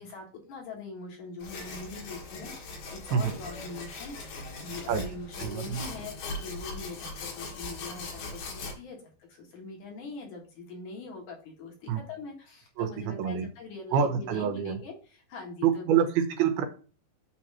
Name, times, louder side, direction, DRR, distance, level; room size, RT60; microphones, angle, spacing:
voice 1, 0.0-15.8, left 3 dB, 60° left, -1 dB, 2.8 m, -43 dB
sound 1, 1.4-8.7, left 3 dB, 75° left, 3.5 m, -40 dB
voice 2, 5.4-5.8 11.9-12.0 12.8-13.5 13.9-14.8 15.6-16.6, right 8 dB, 85° right, 7 dB, 2.9 m, -26 dB
7.8 x 3.0 x 6.1 m, 0.37 s
omnidirectional pair, 4.3 m